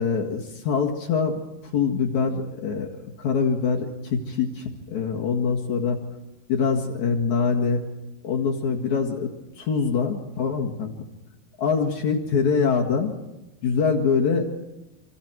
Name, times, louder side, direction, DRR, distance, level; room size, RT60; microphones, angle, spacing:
voice 1, 0.0-6.0 6.5-7.8 8.2-9.3 9.6-10.9 11.6-13.1 13.6-14.4, left 5 dB, 55° left, 2 dB, 2.8 m, -24 dB
26.5 x 26.0 x 4.6 m, 1.0 s
omnidirectional pair, 4.6 m